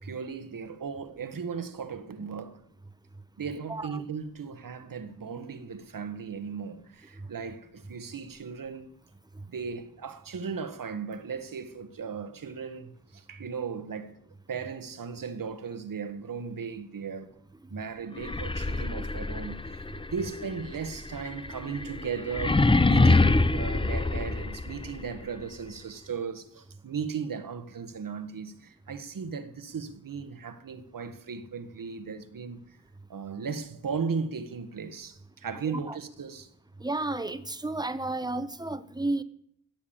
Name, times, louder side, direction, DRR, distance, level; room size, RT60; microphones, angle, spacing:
voice 1, 0.0-2.6 3.4-8.9 9.5-14.2 14.5-17.4 17.7-32.8 33.1-36.5, right 6 dB, 65° right, 1.4 m, -37 dB
voice 2, 3.7-4.0 35.7-36.0 36.8-39.2, right 2 dB, 10° right, 1.1 m, -32 dB
sound 1, 18.2-25.1, left 2 dB, 15° left, 0.6 m, -25 dB
15.0 x 7.1 x 8.7 m
cardioid pair, 60°, 36 cm